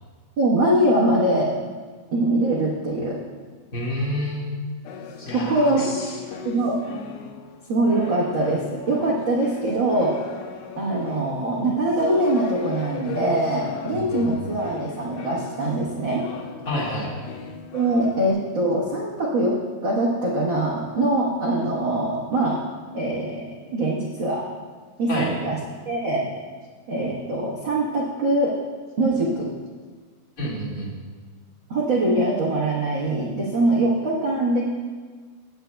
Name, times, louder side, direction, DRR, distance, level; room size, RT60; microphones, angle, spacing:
voice 1, 0.4-1.5 2.1-3.2 5.3-5.9 6.4-6.7 7.7-10.2 10.8-16.2 17.7-19.6 19.8-22.6 22.9-24.4 25.0-25.5 25.8-26.3 26.9-28.6 29.0-29.5 31.7-34.6, right 1 dB, 85° right, -5 dB, 1.0 m, -23 dB
voice 2, 3.7-4.4 5.2-6.2 13.9-14.5 16.7-17.1 25.1-25.3 30.4-30.9, equal, 30° left, -4 dB, 1.7 m, -29 dB
sound 1, 4.9-15.9 16.1-18.3, left 7 dB, 75° left, 2.1 m, -37 dB
19.0 x 9.1 x 2.3 m, 1.5 s
omnidirectional pair, 4.2 m